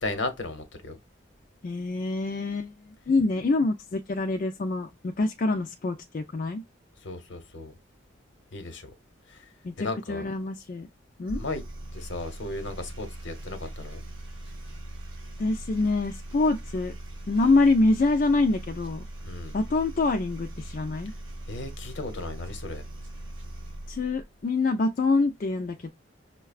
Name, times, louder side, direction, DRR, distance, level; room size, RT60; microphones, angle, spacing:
voice 1, 0.0-1.0 7.0-7.7 8.5-8.9 9.3-9.5 9.8-10.2 11.3-11.6 11.9-14.0 19.2-19.5 21.5-22.9, left 2 dB, 70° left, 0.8 m, -35 dB
voice 2, 1.6-6.6 9.6-10.9 11.2-11.4 15.4-16.9 17.3-19.0 19.5-21.1 23.9-25.9, left 3 dB, 40° left, 0.3 m, -25 dB
sound 1, 11.3-24.2, right 1 dB, 75° right, 1.2 m, -40 dB
5.6 x 2.2 x 2.3 m
head